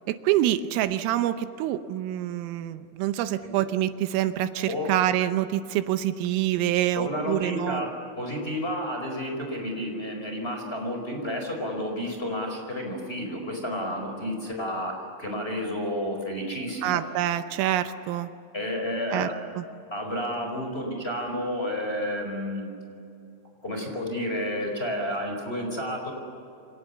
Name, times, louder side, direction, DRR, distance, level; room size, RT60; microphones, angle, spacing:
voice 1, 0.1-7.8 16.8-18.3 19.1-19.6, right 12 dB, 80° right, 10 dB, 3.4 m, -26 dB
voice 2, 7.0-17.0 18.5-19.3 19.9-22.7 23.6-26.1, equal, 10° left, 2 dB, 4.4 m, -31 dB
28.5 x 27.0 x 7.2 m, 2.6 s
omnidirectional pair, 5.9 m